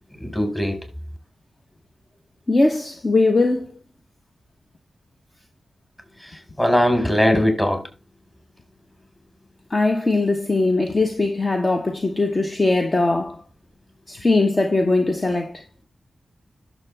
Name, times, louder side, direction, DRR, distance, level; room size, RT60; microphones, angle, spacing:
voice 1, 0.2-0.8 6.2-7.8, equal, 15° left, 5.2 m, -20 dB
voice 2, 2.5-3.7 9.7-13.4 14.1-15.6, left 2 dB, 40° left, 1.1 m, -20 dB
11.0 x 7.3 x 3.6 m
supercardioid pair, 40°, 0 cm